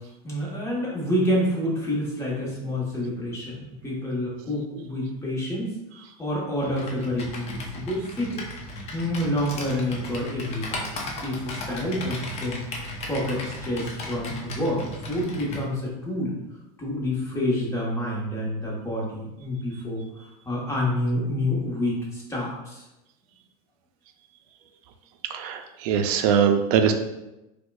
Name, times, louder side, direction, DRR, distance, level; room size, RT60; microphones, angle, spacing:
voice 1, 0.2-5.7 6.2-8.4 8.9-10.9 11.2-12.6 13.0-14.8 15.1-16.3 16.8-20.0 20.5-22.8, left 1 dB, 15° left, -5 dB, 1.1 m, -28 dB
Computer keyboard, 6.6-15.7, left 1 dB, 35° left, 0.7 m, -36 dB
voice 2, 25.3-26.9, right 7 dB, 70° right, 6 dB, 0.4 m, -22 dB
4.3 x 2.3 x 2.3 m, 0.95 s
supercardioid pair, 125°, 19 cm